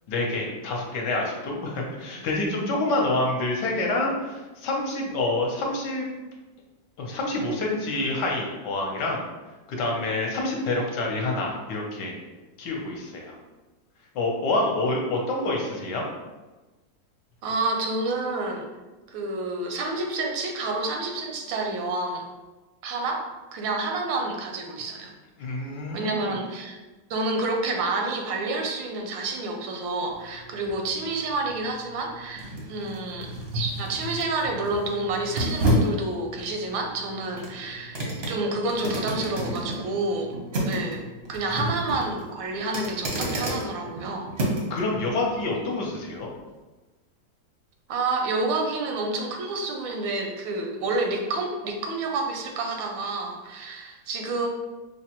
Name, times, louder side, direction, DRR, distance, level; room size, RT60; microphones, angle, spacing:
voice 1, 0.1-6.1 7.0-9.2 9.7-12.1 12.6-13.4 14.1-16.0 25.4-26.3 41.5-41.6 44.7-46.3, left 2 dB, 70° left, 0 dB, 1.2 m, -27 dB
voice 2, 17.4-18.7 19.1-22.2 22.8-23.2 23.5-25.1 25.9-26.8 27.1-38.0 38.3-40.3 40.7-41.0 41.3-44.3 47.9-54.5, right 2 dB, 85° right, 2 dB, 1.4 m, -29 dB
sound 1, 30.1-44.8 45.2-45.4, equal, 55° right, 0.7 m, -31 dB
4.9 x 2.1 x 2.9 m, 1.2 s
omnidirectional pair, 2.0 m